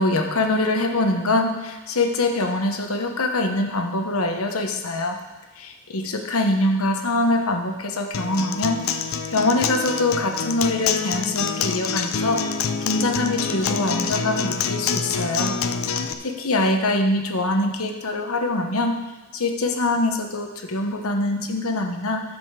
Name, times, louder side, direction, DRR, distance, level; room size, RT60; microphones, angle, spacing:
voice 1, 0.0-5.2 5.6-8.8 9.3-15.6 16.2-19.0 19.3-22.2, left 2 dB, 90° left, 4 dB, 1.1 m, -24 dB
Acoustic guitar, 8.1-16.1, left 6 dB, 75° left, 0.5 m, -26 dB
10.5 x 5.3 x 6.7 m, 1.1 s
head